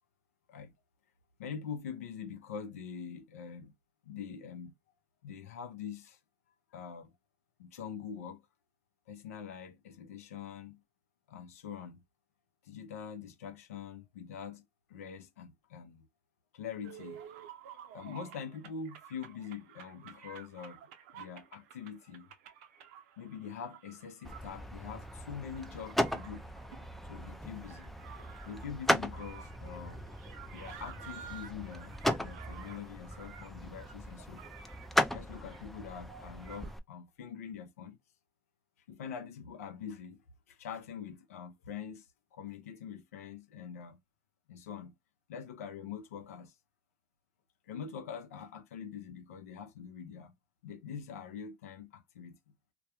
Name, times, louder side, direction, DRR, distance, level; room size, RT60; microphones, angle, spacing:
voice 1, 1.4-3.7 4.0-4.7 5.2-6.2 6.7-7.1 7.6-8.4 9.1-10.8 11.3-12.0 12.6-14.6 14.9-16.1 16.5-17.2 17.9-20.8 21.1-22.3 23.2-26.5 27.1-27.9 28.4-30.0 30.5-34.4 35.1-38.0 38.9-40.2 40.5-42.1 42.3-44.0 44.5-44.9 45.3-46.5 47.7-50.3 50.6-52.4, left 7 dB, 90° left, 0.5 m, -44 dB
sound 1, 16.8-36.8, right 9 dB, 75° right, 0.5 m, -53 dB
sound 2, 24.2-36.8, left 1 dB, ahead, 0.4 m, -37 dB
2.2 x 2.1 x 2.8 m
hypercardioid pair, 90°, 8 cm